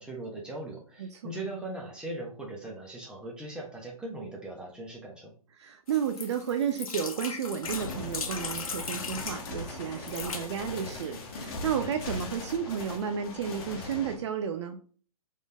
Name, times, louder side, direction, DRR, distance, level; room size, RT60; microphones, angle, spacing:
voice 1, 0.0-5.3, right 2 dB, 5° right, -1 dB, 1.1 m, -39 dB
voice 2, 1.0-1.3 5.6-14.8, right 8 dB, 50° right, 6 dB, 0.5 m, -32 dB
sound 1, 5.9-9.4 10.0-10.5 11.1-11.2 11.4-11.5, left 5 dB, 70° left, 0.9 m, -38 dB
sound 2, 7.6-14.2, left 2 dB, 40° left, 1.3 m, -39 dB
4.0 x 3.6 x 3.5 m, 0.43 s
figure-of-eight pair, 125°, 19 cm